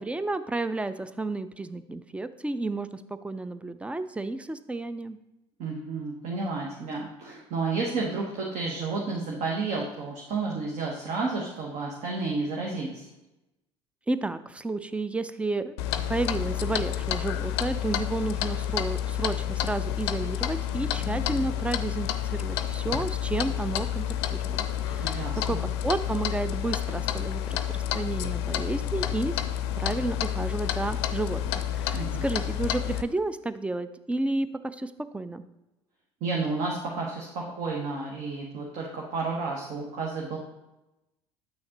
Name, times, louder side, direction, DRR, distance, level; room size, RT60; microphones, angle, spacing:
voice 1, 0.0-5.2 14.1-15.7 16.1-24.1 24.4-25.6 25.8-29.4 29.8-34.5 34.8-35.4, right 2 dB, 10° right, 13 dB, 0.4 m, -31 dB
voice 2, 5.6-13.1 25.0-25.6 31.9-32.3 36.2-40.4, right 3 dB, 50° right, -1 dB, 1.1 m, -31 dB
Clock, 15.8-33.0, left 11 dB, 65° left, 0.5 m, -29 dB
8.1 x 6.4 x 2.9 m, 0.97 s
figure-of-eight pair, 65°, 15 cm